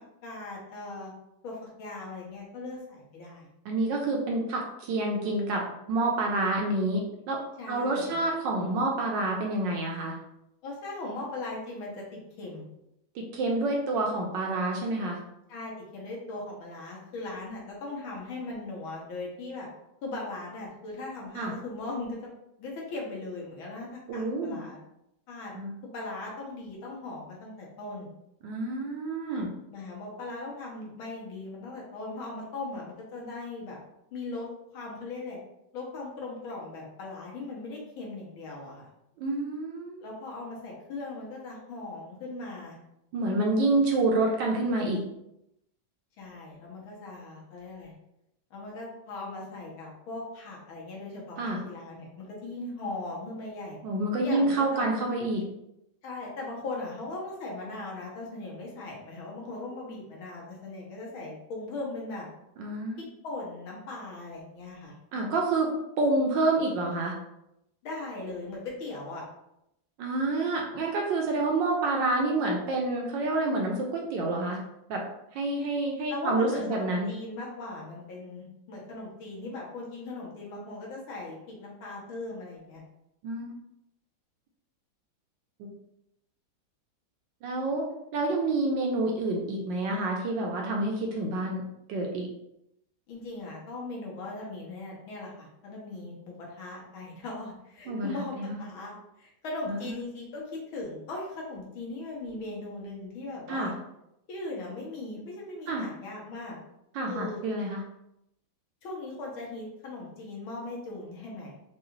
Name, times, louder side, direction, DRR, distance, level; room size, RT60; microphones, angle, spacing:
voice 1, 0.2-1.1 1.4-3.5 7.6-8.2 10.6-12.7 15.5-19.7 20.0-22.2 22.6-24.8 25.3-25.5 25.9-28.1 29.7-33.8 34.1-34.5 34.7-35.4 35.7-38.9 40.0-42.8 46.2-47.9 48.5-51.4 51.6-53.8 54.1-54.9 56.0-62.3 63.0-64.9 67.8-69.2 76.1-82.8 93.1-103.7 104.3-106.6 107.1-107.4 108.8-111.5, left 2 dB, 75° left, -3 dB, 1.8 m, -39 dB
voice 2, 3.6-7.4 7.7-10.2 13.1-15.2 21.3-21.5 24.1-24.6 25.5-25.7 28.4-29.5 39.2-40.0 43.1-45.0 51.4-51.6 53.8-55.4 62.6-63.0 65.1-65.7 66.0-67.1 70.0-74.6 74.9-75.0 75.3-77.1 83.2-83.5 85.6-85.7 87.4-87.9 88.1-91.6 91.9-92.3 97.9-98.6 99.7-99.9 103.5-103.7 105.7-105.8 106.9-107.8, right 2 dB, 70° right, 0 dB, 1.2 m, -28 dB
4.6 x 2.4 x 3.1 m, 0.83 s
omnidirectional pair, 2.3 m